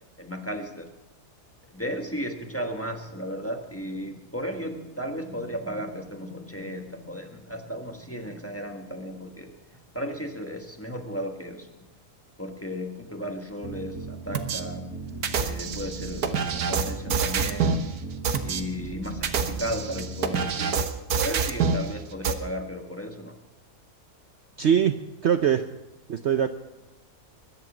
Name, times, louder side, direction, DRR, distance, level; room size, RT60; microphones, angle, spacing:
voice 1, 0.2-0.9 1.7-9.5 9.9-11.7 12.4-14.9 15.4-17.8 18.4-23.4, equal, 10° left, 4 dB, 1.3 m, -35 dB
sound 1, 13.6-20.5, right 2 dB, 10° right, 7.0 m, -37 dB
sound 2, 14.3-14.6 15.2-17.8 18.2-18.6 19.1-21.8 22.2-22.3, right 6 dB, 85° right, 1.6 m, -26 dB
voice 2, 24.6-25.0 25.2-25.6 26.1-26.5, right 8 dB, 60° right, 9 dB, 0.9 m, -21 dB
21.5 x 10.5 x 6.1 m, 1.1 s
omnidirectional pair, 1.6 m